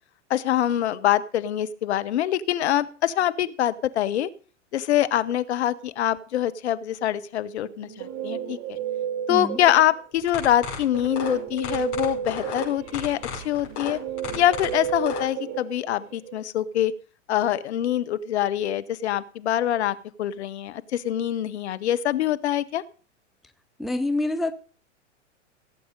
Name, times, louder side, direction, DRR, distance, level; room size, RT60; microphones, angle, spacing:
voice 1, 0.3-4.3 4.7-8.6 9.3-14.0 14.3-16.9 17.3-22.8, left 12 dB, 60° left, 0.9 m, -24 dB
Guitar, 7.6-10.2 10.9-16.3, right 9 dB, 35° right, 2.2 m, -33 dB
voice 2, 9.3-9.6 23.8-24.5, left 2 dB, ahead, 0.5 m, -26 dB
sound 1, 10.2-15.2, left 7 dB, 45° left, 5.8 m, -34 dB
16.5 x 7.8 x 5.1 m
figure-of-eight pair, 95°, 37 cm